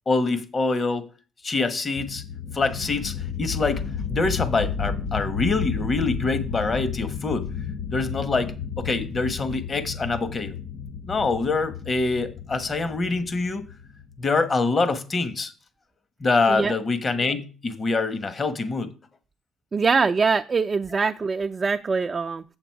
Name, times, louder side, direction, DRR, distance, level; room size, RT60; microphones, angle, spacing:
voice 1, 0.1-1.1 1.4-2.2 2.5-7.5 7.9-10.6 11.1-13.7 14.2-15.5 16.2-18.9, left 3 dB, 35° left, 1.3 m, -25 dB
sound 1, 2.0-14.4, left 7 dB, 60° left, 0.6 m, -32 dB
voice 2, 19.7-22.4, right 5 dB, 35° right, 0.4 m, -23 dB
7.9 x 7.0 x 4.6 m
cardioid pair, 85°, 0 cm